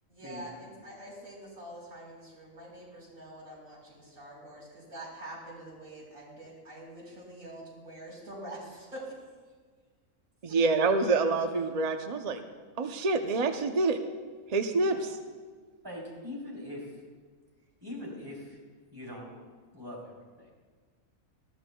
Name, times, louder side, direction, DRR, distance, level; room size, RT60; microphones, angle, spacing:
voice 1, 0.1-9.2 10.5-10.6 14.8-15.0, right 1 dB, 70° right, -5 dB, 4.5 m, -45 dB
voice 2, 10.4-12.4 12.8-14.0 14.5-15.1, right 3 dB, 45° right, 6 dB, 0.5 m, -27 dB
voice 3, 15.8-16.8 17.8-18.6 18.9-19.3 19.7-20.5, left 1 dB, 15° right, -4 dB, 3.5 m, -42 dB
20.0 x 13.5 x 2.3 m, 1.5 s
omnidirectional pair, 1.4 m